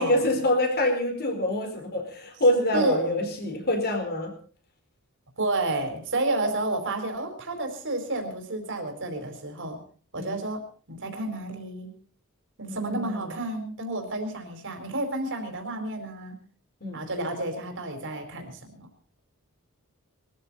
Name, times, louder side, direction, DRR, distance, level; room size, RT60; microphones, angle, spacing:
voice 1, 0.0-4.3 10.1-10.3 12.7-13.2 16.8-17.0, left 1 dB, 45° left, 5 dB, 4.6 m, -26 dB
voice 2, 2.7-3.4 5.4-9.8 10.1-11.9 12.6-16.4 16.9-18.9, right 2 dB, 60° right, 5 dB, 4.4 m, -30 dB
23.0 x 14.0 x 4.2 m, 0.41 s
head